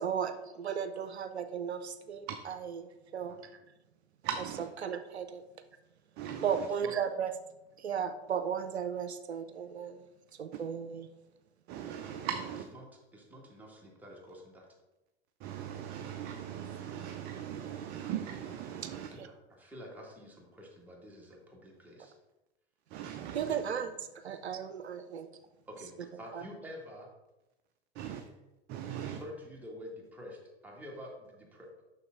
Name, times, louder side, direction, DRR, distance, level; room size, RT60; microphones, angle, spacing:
voice 1, 0.0-3.5 4.8-5.4 6.4-7.3 7.8-10.0 10.4-11.1 19.2-19.3 23.3-24.0 24.2-25.3 26.3-26.4, right 7 dB, 75° right, 0.6 m, -35 dB
voice 2, 4.2-4.7 6.2-6.7 10.5-10.6 11.7-12.7 15.4-19.1 22.9-23.6 27.9-28.3 28.7-29.2, right 9 dB, 30° right, 0.5 m, -39 dB
voice 3, 13.1-14.7 19.1-22.1 25.7-27.1 29.1-31.7, equal, 5° right, 1.8 m, -48 dB
6.8 x 5.9 x 3.6 m
figure-of-eight pair, 90°, 33 cm